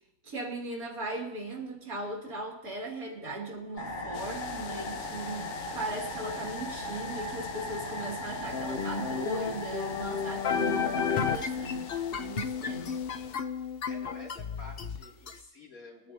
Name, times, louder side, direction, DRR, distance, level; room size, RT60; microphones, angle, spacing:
voice 1, 0.2-13.0, right 1 dB, 75° right, -1 dB, 3.0 m, -38 dB
sound 1, 3.8-12.6, left 1 dB, 35° left, 1.8 m, -39 dB
sound 2, 4.1-13.4, left 10 dB, 90° left, 1.1 m, -47 dB
sound 3, 8.5-15.4, left 6 dB, 50° left, 0.8 m, -32 dB
voice 2, 13.8-16.1, left 2 dB, 70° left, -4 dB, 3.3 m, -49 dB
22.0 x 9.6 x 2.8 m, 0.87 s
omnidirectional pair, 1.5 m